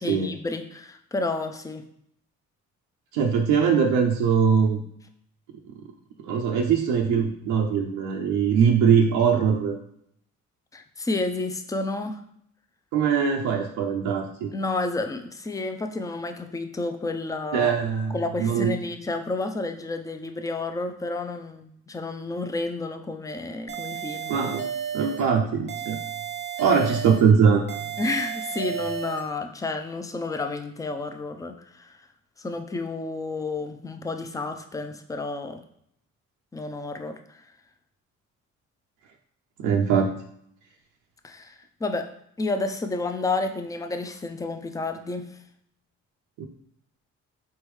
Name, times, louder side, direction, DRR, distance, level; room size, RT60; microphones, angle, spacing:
voice 1, 0.0-1.8 10.7-12.2 14.5-17.7 18.1-24.4 28.0-31.9 32.4-35.6 36.5-37.4 41.2-42.1 42.4-45.3, left 3 dB, 10° left, 6 dB, 0.4 m, -30 dB
voice 2, 3.1-4.8 6.2-9.8 12.9-14.5 17.5-18.7 24.3-24.7 24.9-26.0 26.6-27.8 39.6-40.1 46.4-46.5, right 6 dB, 85° right, 1 dB, 0.5 m, -22 dB
sound 1, 23.7-25.3 25.7-27.3 27.7-29.3, right 8 dB, 35° right, 0.6 m, -33 dB
4.3 x 3.5 x 3.1 m, 0.69 s
cardioid pair, 90°, 30 cm